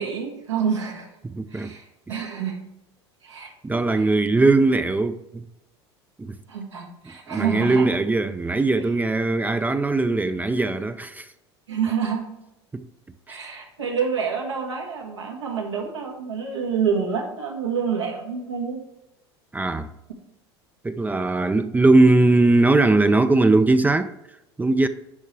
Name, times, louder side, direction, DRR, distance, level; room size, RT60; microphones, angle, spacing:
voice 1, 0.0-1.1 1.5-2.6 3.2-4.1 6.5-7.9 11.7-12.3 13.3-18.8, right 6 dB, 85° right, 1.7 m, -28 dB
voice 2, 1.2-1.7 2.1-2.2 3.6-5.5 6.2-6.4 7.3-11.3 12.7-12.9 13.3-13.4 19.5-19.9 20.8-24.1 24.6-24.9, right 2 dB, 10° right, 0.5 m, -20 dB
10.5 x 5.4 x 3.3 m
hypercardioid pair, 75°, 14 cm